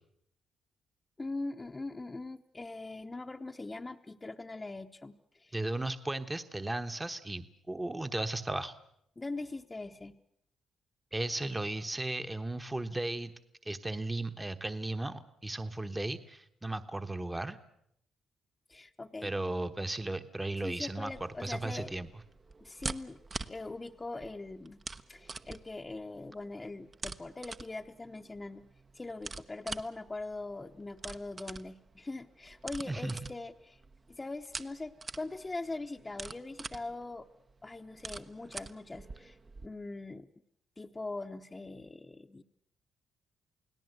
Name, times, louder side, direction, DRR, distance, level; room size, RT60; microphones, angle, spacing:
voice 1, 1.2-5.5 9.2-10.1 18.7-19.3 20.6-21.9 22.6-23.2 23.5-24.8 25.1-28.6 28.9-33.8 34.1-37.3 37.6-40.3 40.8-42.4, left 2 dB, 20° left, 2 dB, 1.0 m, -41 dB
voice 2, 5.5-8.7 11.1-13.3 13.6-17.6 19.2-22.1 32.9-33.2, right 2 dB, 15° right, 9 dB, 1.2 m, -35 dB
sound 1, 21.1-39.7, right 4 dB, 35° right, 0.9 m, -46 dB
29.0 x 18.0 x 8.0 m, 0.72 s
cardioid pair, 90°, 0 cm